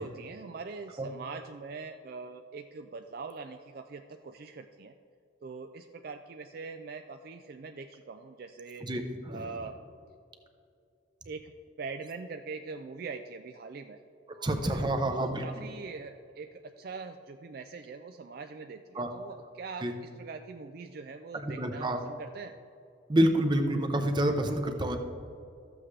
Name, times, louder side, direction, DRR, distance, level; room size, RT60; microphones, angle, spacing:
voice 1, 0.0-4.9 5.4-8.9 9.3-9.8 11.3-11.5 11.8-14.0 14.3-22.6, right 4 dB, 50° right, 6 dB, 0.3 m, -42 dB
voice 2, 8.8-9.5 14.4-15.5 18.9-19.1 19.8-19.9 21.3-22.0 23.1-25.0, right 1 dB, 25° right, 5 dB, 0.7 m, -28 dB
13.5 x 7.8 x 3.2 m, 2.5 s
head